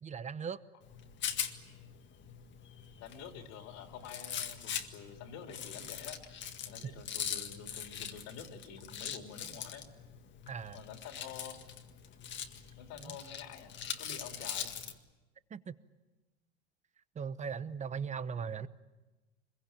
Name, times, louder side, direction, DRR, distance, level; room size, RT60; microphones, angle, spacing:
voice 1, 0.0-0.6 10.5-10.8 13.0-13.2 15.5-15.7 17.2-18.7, right 6 dB, 20° right, 15 dB, 0.9 m, -38 dB
Rattle, 0.8-15.0, left 8 dB, 35° left, 1.9 m, -42 dB
voice 2, 3.0-6.2 6.6-9.9 10.7-11.6 12.7-14.7, left 7 dB, 55° left, 5 dB, 3.3 m, -48 dB
25.0 x 22.0 x 8.9 m, 1.1 s
hypercardioid pair, 105°, 33 cm